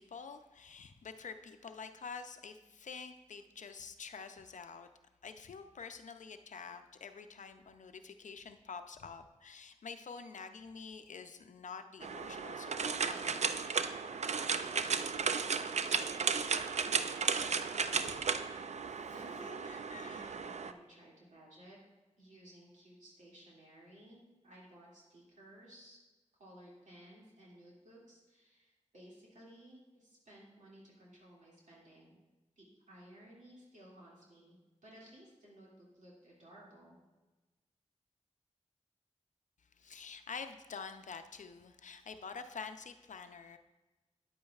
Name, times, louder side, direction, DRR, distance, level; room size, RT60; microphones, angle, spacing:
voice 1, 0.0-4.9 5.2-13.6 18.2-18.3 19.4-20.4 39.8-43.6, left 5 dB, 85° left, 8 dB, 0.5 m, -48 dB
sound 1, 12.0-20.7, right 5 dB, 65° right, 0.4 m, -34 dB
voice 2, 19.0-21.8 22.2-26.0 26.4-32.2 32.6-34.6 34.8-37.0, right 1 dB, 85° right, -6 dB, 2.3 m, -57 dB
9.5 x 8.4 x 2.4 m, 1.1 s
cardioid pair, 50°, 12 cm